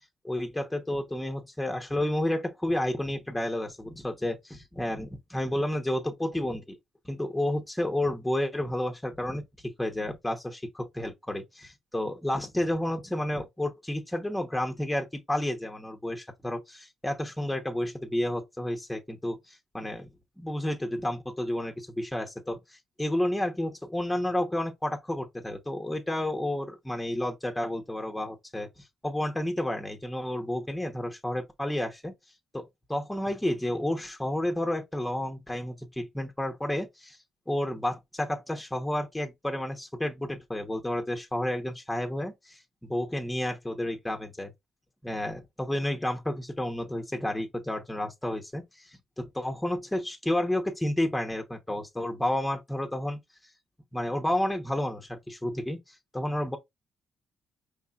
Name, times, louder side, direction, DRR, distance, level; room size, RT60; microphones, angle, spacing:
voice 1, 0.2-6.8 7.0-9.4 9.8-20.1 20.4-28.7 29.0-32.1 32.5-32.6 32.9-37.2 37.5-44.5 45.0-53.2 53.9-56.6, left 1 dB, 10° left, 0.9 m, -31 dB
5.4 x 3.5 x 2.4 m
cardioid pair, 90°, 0 cm